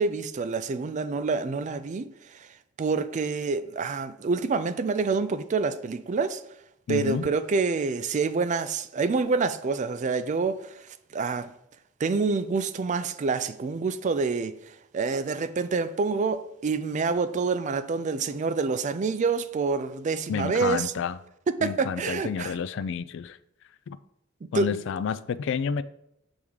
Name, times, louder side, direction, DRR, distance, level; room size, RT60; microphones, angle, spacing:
voice 1, 0.0-2.5 2.8-6.4 6.9-10.8 11.1-11.5 12.0-14.6 14.9-20.9 21.6-22.5 24.5-24.7, right 4 dB, 35° right, 0.3 m, -27 dB
voice 2, 6.9-7.3 20.3-21.2 21.6-23.4 23.9-24.0 24.5-25.8, left 6 dB, 60° left, 0.3 m, -30 dB
7.1 x 3.5 x 4.8 m
head